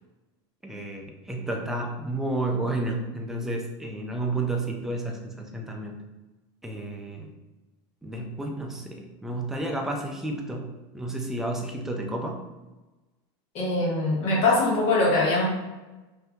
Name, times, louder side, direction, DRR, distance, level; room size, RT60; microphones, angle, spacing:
voice 1, 0.6-6.0 6.6-7.3 8.0-12.4, right 2 dB, 5° right, 1 dB, 0.4 m, -31 dB
voice 2, 13.5-15.5, left 2 dB, 45° left, -4 dB, 1.2 m, -22 dB
2.8 x 2.6 x 3.4 m, 1.1 s
supercardioid pair, 145°, 14 cm